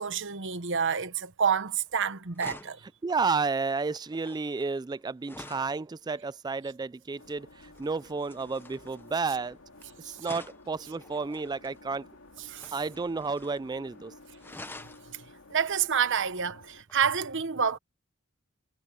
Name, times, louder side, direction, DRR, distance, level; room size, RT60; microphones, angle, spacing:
voice 1, 0.0-2.8 10.0-10.1 12.5-12.7 15.5-17.8, right 7 dB, 60° right, 1.1 m, -28 dB
sound 1, 1.8-2.0 2.3-5.8 7.7-9.8 10.2-11.8 12.5-13.7 13.9-14.0 14.4-15.1 16.9-17.0, left 2 dB, 10° left, 0.8 m, -48 dB
voice 2, 3.0-9.6 10.0-12.1 12.7-14.1, right 4 dB, 20° right, 0.3 m, -31 dB
sound 2, 7.2-16.8, left 2 dB, 80° left, 2.7 m, -53 dB
head